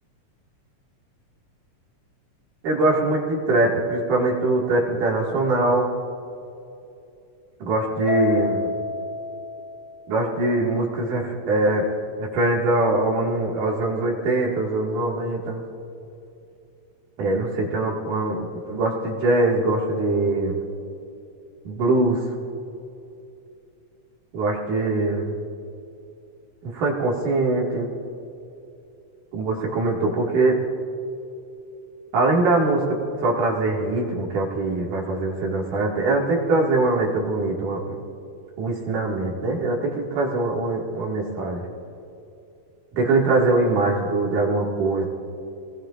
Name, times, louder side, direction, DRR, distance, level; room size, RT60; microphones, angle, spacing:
voice 1, 2.6-5.9 7.6-8.7 10.1-11.9 12.2-15.6 17.2-20.6 21.7-22.2 24.3-25.3 26.6-27.9 29.3-30.7 32.1-38.0 38.6-41.6 43.0-45.1, right 2 dB, 75° right, -2 dB, 3.6 m, -22 dB
Keyboard (musical), 8.1-10.6, left 7 dB, 70° left, 1.9 m, -30 dB
27.0 x 20.0 x 2.5 m, 2.7 s
omnidirectional pair, 3.6 m